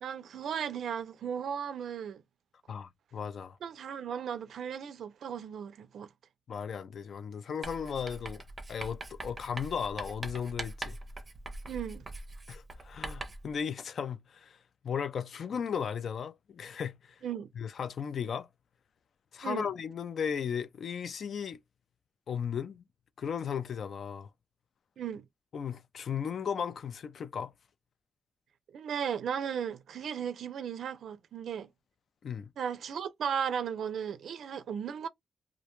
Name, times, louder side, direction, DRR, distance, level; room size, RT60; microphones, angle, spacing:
voice 1, 0.0-2.2 3.6-6.1 11.6-12.0 17.2-17.5 19.4-19.7 25.0-25.3 28.7-31.7 32.6-35.1, right 8 dB, 85° right, 0.4 m, -36 dB
voice 2, 2.7-3.6 6.5-8.4 8.7-11.0 12.5-14.6 14.8-17.2 17.6-18.5 19.3-21.6 22.3-22.8 23.2-24.3 25.5-27.5 32.2-32.5, left 7 dB, 60° left, 0.3 m, -36 dB
Writing, 7.6-13.5, right 2 dB, 25° right, 0.5 m, -42 dB
2.4 x 2.1 x 2.9 m
wide cardioid pair, 160°, 0 cm